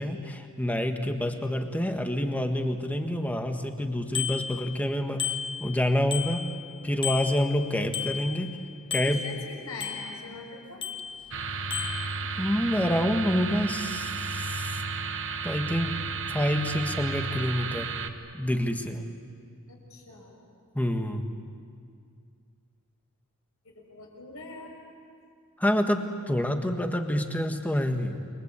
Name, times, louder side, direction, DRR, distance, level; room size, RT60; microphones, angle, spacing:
voice 1, 0.0-5.3 5.6-6.5 6.8-8.6 8.9-9.2 12.4-14.7 15.4-16.0 16.3-18.0 18.3-19.1 20.7-21.3 25.6-28.3, equal, 5° left, 5 dB, 1.6 m, -27 dB
Bicycle bell, 4.1-4.9 5.2-6.7 7.0-8.6 8.9-10.3 10.8-11.4 11.7-12.1, left 8 dB, 20° left, 1.3 m, -34 dB
voice 2, 9.0-10.8 19.7-20.4 23.6-24.7, left 2 dB, 70° left, 0 dB, 6.8 m, -43 dB
sound 1, 11.3-18.1, right 4 dB, 60° right, 1.4 m, -33 dB
29.5 x 23.0 x 8.3 m, 2.3 s
head